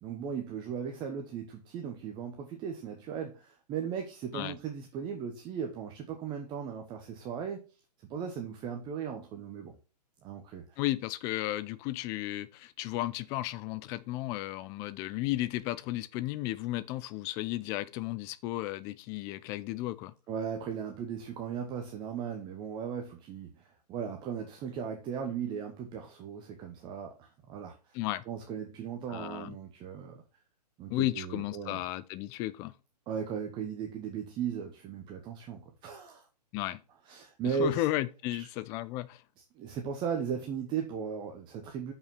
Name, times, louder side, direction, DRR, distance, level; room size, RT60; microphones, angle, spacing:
voice 1, 0.0-7.6 8.1-9.7 10.2-10.8 20.3-28.0 28.3-30.2 30.8-31.8 33.1-36.3 37.1-37.8 38.4-38.5 39.5-41.9, right 7 dB, 20° right, 1.0 m, -37 dB
voice 2, 10.8-20.1 27.9-28.2 29.1-29.5 30.9-32.7 36.5-36.8 37.6-39.2, left 16 dB, 15° left, 0.3 m, -34 dB
6.8 x 5.6 x 5.7 m
figure-of-eight pair, 125°, 21 cm